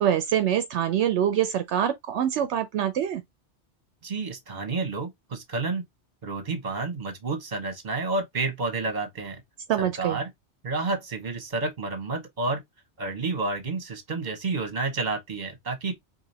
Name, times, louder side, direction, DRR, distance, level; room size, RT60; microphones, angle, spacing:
voice 1, 0.0-3.2 9.7-10.2, right 10 dB, 75° right, 0.9 m, -25 dB
voice 2, 4.0-5.8 6.2-9.4 9.8-10.3 10.6-12.6 13.0-15.9, right 3 dB, 40° right, 1.3 m, -30 dB
4.8 x 2.7 x 2.7 m
omnidirectional pair, 1.2 m